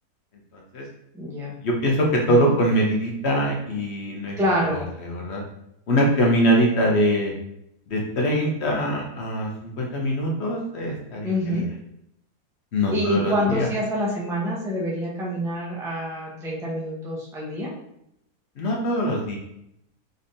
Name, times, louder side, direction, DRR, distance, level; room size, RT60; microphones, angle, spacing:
voice 1, 0.5-0.8 1.6-4.4 4.7-5.4 5.9-7.3 7.9-11.6 12.7-13.7 18.6-19.4, equal, 55° left, -1 dB, 0.8 m, -23 dB
voice 2, 1.1-1.5 2.2-2.5 4.1-4.8 11.2-11.7 12.9-17.7, equal, 5° right, -5 dB, 0.5 m, -26 dB
3.9 x 3.3 x 2.6 m, 0.78 s
omnidirectional pair, 1.6 m